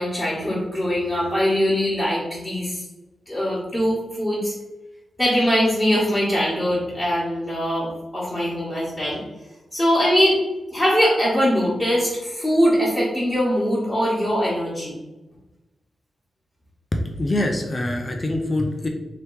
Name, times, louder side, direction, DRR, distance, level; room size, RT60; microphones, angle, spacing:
voice 1, 0.0-2.8 3.3-4.5 5.2-7.9 8.1-9.2 9.7-10.4 10.7-15.0, equal, 5° left, -10 dB, 1.4 m, -22 dB
voice 2, 16.9-18.9, left 1 dB, 25° left, 2 dB, 0.4 m, -24 dB
3.3 x 2.9 x 4.6 m, 1.1 s
wide cardioid pair, 135°, 0 cm